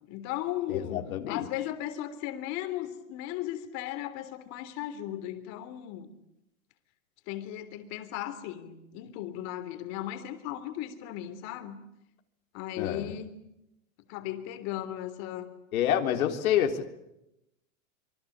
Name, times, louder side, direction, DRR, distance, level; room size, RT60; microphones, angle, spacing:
voice 1, 0.1-6.1 7.3-11.8 12.5-13.3 14.1-15.5, left 12 dB, 40° left, 9 dB, 3.5 m, -36 dB
voice 2, 0.7-1.5 12.8-13.1 15.7-16.8, left 10 dB, 75° left, 5 dB, 3.7 m, -27 dB
26.5 x 24.0 x 8.7 m, 0.86 s
supercardioid pair, 155°, 42 cm